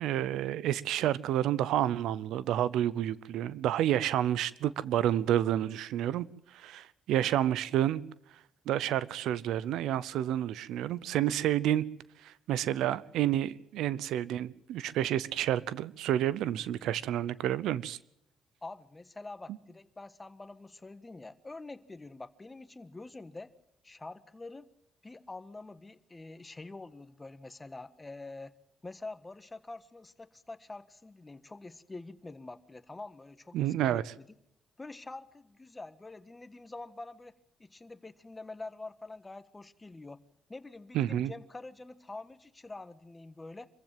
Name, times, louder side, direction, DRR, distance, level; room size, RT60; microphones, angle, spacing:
voice 1, 0.0-8.0 8.7-11.9 12.2-18.0 33.5-34.1 40.9-41.3, right 12 dB, 85° right, 19 dB, 0.7 m, -29 dB
voice 2, 18.6-23.5 23.8-24.6 25.0-28.5 28.8-34.3 34.8-37.3 37.6-40.2 40.5-43.7, left 2 dB, 20° left, 12 dB, 1.4 m, -46 dB
25.5 x 15.0 x 7.5 m, 0.80 s
cardioid pair, 90°, 0 cm